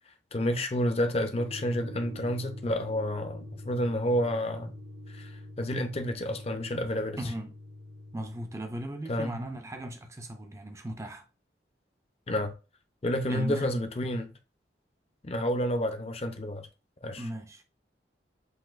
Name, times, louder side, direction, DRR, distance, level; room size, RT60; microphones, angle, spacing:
voice 1, 0.3-4.7 5.1-5.3 5.6-7.2 9.1-9.4 12.3-12.5 13.0-14.3 15.2-16.7 17.0-17.2, equal, 35° left, 0.6 m, -30 dB
sound 1, 1.3-8.6, left 1 dB, 70° right, 1.0 m, -44 dB
voice 2, 7.2-7.5 8.1-11.3 13.3-13.8 17.2-17.6, right 1 dB, 15° right, 0.5 m, -37 dB
7.9 x 2.7 x 2.4 m
head